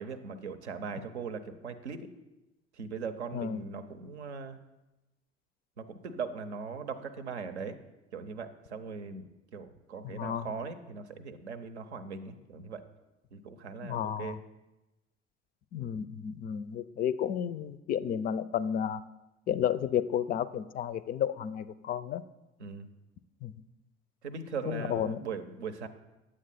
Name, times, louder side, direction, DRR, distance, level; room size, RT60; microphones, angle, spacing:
voice 1, 0.0-2.1 2.7-4.6 5.8-7.8 8.1-12.8 13.3-14.4 22.6-22.9 24.2-25.9, right 5 dB, 80° right, 9 dB, 0.7 m, -40 dB
voice 2, 10.0-10.5 13.8-14.4 15.7-19.0 19.5-22.2 23.4-23.6 24.7-25.2, left 9 dB, 25° left, 16 dB, 0.4 m, -32 dB
9.7 x 7.5 x 4.1 m, 1.0 s
figure-of-eight pair, 60°, 33 cm